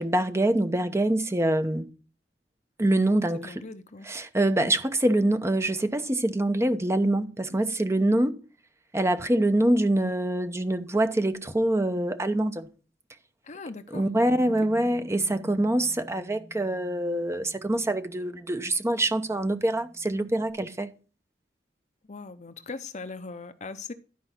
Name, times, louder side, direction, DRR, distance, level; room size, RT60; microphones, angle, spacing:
voice 1, 0.0-1.9 2.8-3.6 4.0-8.4 8.9-12.7 13.9-20.9, right 1 dB, 15° right, 0.8 m, -25 dB
voice 2, 3.3-4.1 13.4-14.1 14.5-14.6 22.1-23.9, left 3 dB, 40° left, 0.7 m, -40 dB
Bass guitar, 14.3-20.5, equal, ahead, 3.2 m, -51 dB
12.0 x 5.0 x 5.7 m
head